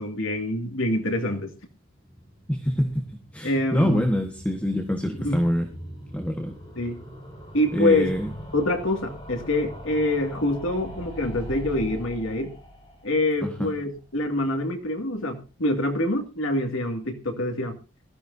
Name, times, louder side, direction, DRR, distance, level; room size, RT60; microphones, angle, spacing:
voice 1, 0.0-1.5 3.4-4.1 5.2-5.4 6.8-7.0 7.5-8.1 8.5-12.5 13.0-17.8, left 1 dB, 80° left, 2.4 m, -25 dB
sound 1, 1.8-14.9 15.1-15.2 15.4-15.5 15.7-15.8, equal, 30° left, 5.7 m, -42 dB
voice 2, 2.5-5.7 6.1-6.5 7.7-8.3 13.4-13.7, equal, 5° left, 1.4 m, -26 dB
20.5 x 13.5 x 2.7 m
head